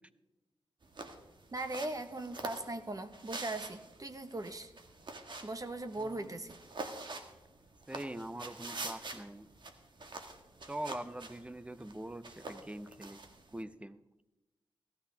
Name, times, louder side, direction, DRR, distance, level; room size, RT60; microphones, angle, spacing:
sound 1, 0.8-13.6, right 3 dB, 50° right, 1.7 m, -47 dB
voice 1, 1.5-4.7 5.4-6.6, right 2 dB, 35° right, 9 dB, 1.3 m, -39 dB
voice 2, 6.0-6.4 7.9-9.5 10.7-13.2 13.5-14.2, right 1 dB, 10° right, 13 dB, 0.8 m, -43 dB
17.5 x 13.5 x 3.5 m, 1.0 s
cardioid pair, 60°, 10 cm